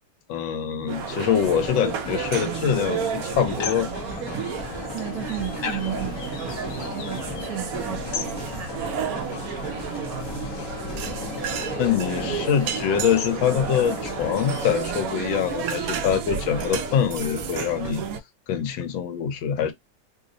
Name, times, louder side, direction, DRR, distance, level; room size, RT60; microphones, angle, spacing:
voice 1, 0.3-3.9 11.8-18.0 18.5-19.7, left 8 dB, 85° left, 1.5 m, -24 dB
sound 1, 0.9-14.7, left 5 dB, 55° left, 1.0 m, -36 dB
sound 2, 0.9-17.9, left 1 dB, 40° left, 0.3 m, -39 dB
sound 3, 0.9-18.2, right 8 dB, 80° right, 0.8 m, -32 dB
voice 2, 4.9-8.7, right 11 dB, 60° right, 1.3 m, -34 dB
3.3 x 2.1 x 3.7 m
omnidirectional pair, 2.1 m